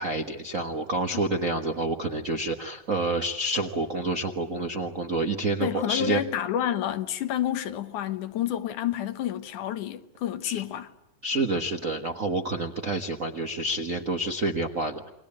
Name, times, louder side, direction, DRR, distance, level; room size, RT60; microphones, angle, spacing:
voice 1, 0.0-6.2 10.4-10.6 11.2-15.1, right 2 dB, 50° right, 1.0 m, -28 dB
voice 2, 5.6-10.9, left 11 dB, 75° left, 2.6 m, -29 dB
28.5 x 23.0 x 8.7 m
omnidirectional pair, 3.6 m